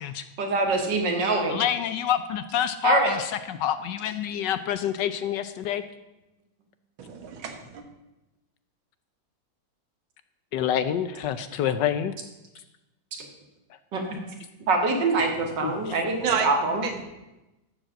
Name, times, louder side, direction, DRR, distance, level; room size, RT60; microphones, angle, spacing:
voice 1, 0.4-1.6 2.8-3.1 13.9-14.0 14.7-16.8, right 3 dB, 65° right, 3 dB, 2.3 m, -24 dB
voice 2, 1.5-5.8 10.5-12.1 15.6-16.0, left 9 dB, 70° left, 12 dB, 1.1 m, -27 dB
voice 3, 7.0-7.8 15.8-16.5 16.8-17.0, right 6 dB, 85° right, 6 dB, 2.1 m, -30 dB
13.0 x 5.0 x 7.6 m, 0.99 s
omnidirectional pair, 2.1 m